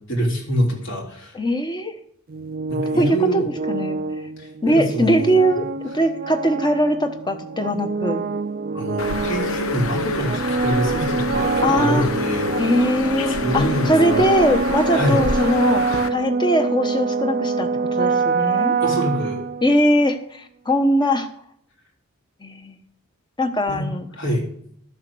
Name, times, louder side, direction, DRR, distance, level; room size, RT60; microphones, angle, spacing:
voice 1, 0.1-1.3 2.7-3.5 4.4-5.4 8.7-12.5 13.4-14.2 14.9-15.2 18.8-19.4 23.7-23.9 24.2-24.4, equal, 60° left, -1 dB, 3.5 m, -25 dB
voice 2, 1.3-1.9 3.0-4.0 4.6-8.2 11.6-12.1 12.6-15.8 16.1-17.7 18.0-18.8 19.6-21.3 22.4-22.8 23.4-24.1, equal, 20° left, 7 dB, 1.1 m, -21 dB
sound 1, 2.3-19.9, right 4 dB, 40° right, 0.4 m, -25 dB
Bird, 9.0-16.1, left 4 dB, 75° left, 0.9 m, -29 dB
13.0 x 7.4 x 6.2 m, 0.66 s
head